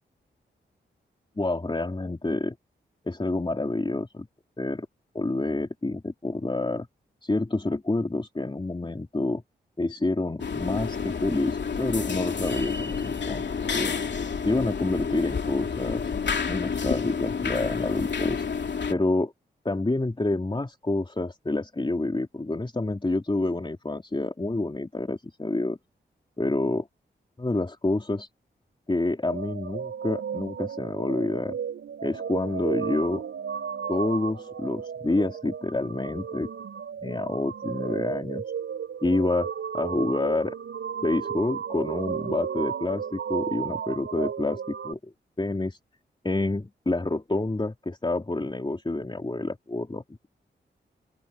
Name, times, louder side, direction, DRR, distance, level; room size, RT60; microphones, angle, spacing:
voice 1, 1.4-2.6 3.1-4.3 4.6-4.9 5.1-6.9 7.2-9.4 9.8-13.5 13.7-14.0 14.4-16.1 16.5-18.4 18.9-19.3 19.7-25.8 26.4-26.9 27.4-28.3 28.9-31.6 32.0-33.2 33.9-36.5 37.0-38.4 39.0-40.6 41.0-45.1 45.4-45.8 46.2-50.3, left 2 dB, 25° left, 3.5 m, -28 dB
sound 1, 10.4-18.9, left 5 dB, 65° left, 3.0 m, -29 dB
sound 2, 29.3-44.9, right 7 dB, 85° right, 5.0 m, -34 dB
open air
cardioid pair, 50°, 20 cm